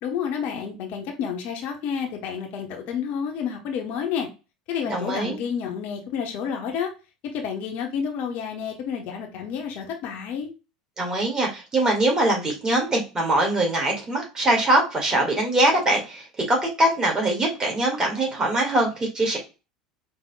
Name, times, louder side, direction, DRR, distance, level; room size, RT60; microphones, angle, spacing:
voice 1, 0.0-4.3 4.7-6.9 7.2-10.5, left 7 dB, 50° left, 2 dB, 1.0 m, -30 dB
voice 2, 4.9-5.4 11.0-19.4, right 1 dB, 20° right, 0 dB, 2.0 m, -22 dB
5.3 x 3.4 x 2.3 m, 0.30 s
figure-of-eight pair, 75°, 4 cm